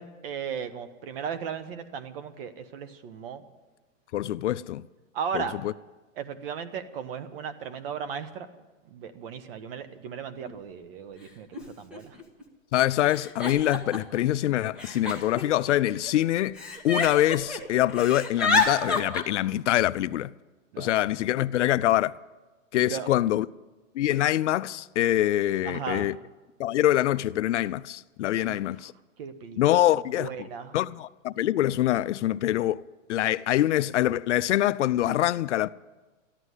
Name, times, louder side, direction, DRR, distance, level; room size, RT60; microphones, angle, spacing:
voice 1, 0.0-3.4 5.1-5.6 6.2-8.5 8.9-12.2 20.7-21.0 22.9-23.1 24.1-24.2 25.6-26.1 28.4-28.6 29.2-29.8 30.2-30.8, right 7 dB, 45° right, 1.2 m, -36 dB
voice 2, 4.1-4.8 5.3-5.7 12.7-16.6 16.8-20.3 20.8-22.1 22.7-23.5 23.9-26.2 26.6-28.9 29.6-30.3 30.7-35.7, left 13 dB, 65° left, 0.5 m, -25 dB
Giggle, 10.5-10.6 11.5-11.6 11.9-12.4 13.1-14.2 14.8-16.1 16.6-17.6 17.9-19.2, left 3 dB, ahead, 1.2 m, -29 dB
14.5 x 11.5 x 8.2 m
hypercardioid pair, 155°, 39 cm